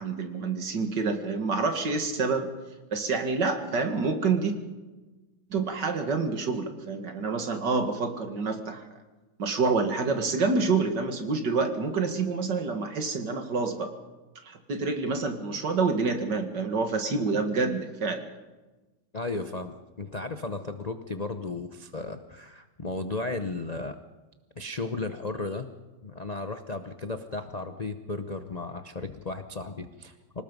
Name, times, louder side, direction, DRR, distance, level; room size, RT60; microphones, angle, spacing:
voice 1, 0.0-2.5 2.9-4.6 5.5-8.8 9.4-13.9 14.4-18.2, right 4 dB, 55° right, 6 dB, 2.5 m, -27 dB
voice 2, 19.1-24.0 24.6-25.7 26.0-30.4, left 3 dB, 65° left, 8 dB, 0.4 m, -35 dB
26.0 x 19.0 x 5.4 m, 1.2 s
omnidirectional pair, 2.3 m